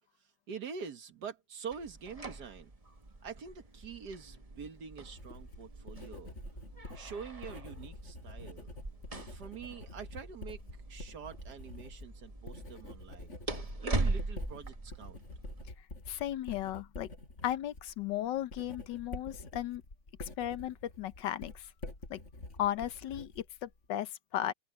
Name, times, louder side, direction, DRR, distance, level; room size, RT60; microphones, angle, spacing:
voice 1, 0.2-2.7 3.2-6.4 6.9-8.8 9.1-10.6 10.9-13.3 13.8-15.2, right 6 dB, 65° right, 2.0 m, -45 dB
sound 1, 1.7-15.7, right 2 dB, 20° right, 1.5 m, -41 dB
Writing, 5.1-23.9, left 2 dB, 40° left, 5.0 m, -48 dB
voice 2, 16.1-17.1 17.4-19.8 20.2-21.7 22.1-22.2 22.6-24.5, left 12 dB, 80° left, 1.5 m, -35 dB
open air
omnidirectional pair, 1.9 m